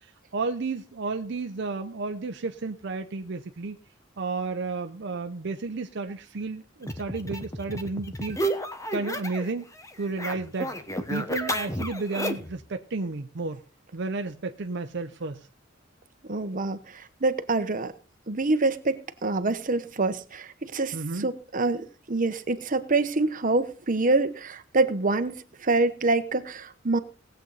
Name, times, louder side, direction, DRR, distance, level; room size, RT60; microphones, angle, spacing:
voice 1, 0.0-3.8 4.2-8.4 8.9-9.7 10.0-10.7 11.1-13.6 13.9-15.5 20.9-21.3, right 3 dB, 65° right, 7 dB, 0.7 m, -32 dB
sound 1, 6.8-9.5 9.8-12.6, equal, 15° left, 1.1 m, -32 dB
voice 2, 16.3-17.9 18.3-25.3 25.6-27.0, right 3 dB, 45° right, 10 dB, 1.0 m, -26 dB
19.0 x 8.0 x 4.0 m, 0.38 s
head